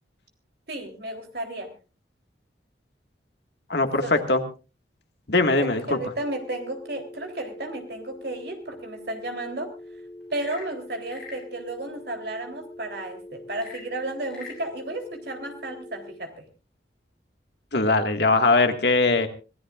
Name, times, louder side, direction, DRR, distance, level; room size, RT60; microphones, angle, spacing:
voice 1, 0.7-1.7 4.0-4.4 5.6-9.7 10.3-16.4, right 1 dB, 60° right, 5 dB, 3.4 m, -33 dB
voice 2, 3.7-4.4 5.3-6.0 17.7-19.3, left 3 dB, 65° left, 6 dB, 1.8 m, -21 dB
sound 1, 6.1-16.1, left 1 dB, 35° right, 5.8 m, -44 dB
Frog / Percussion / Wood, 10.2-11.5 13.5-14.6, left 4 dB, 5° left, 7.5 m, -43 dB
25.5 x 16.5 x 2.5 m, 0.33 s
head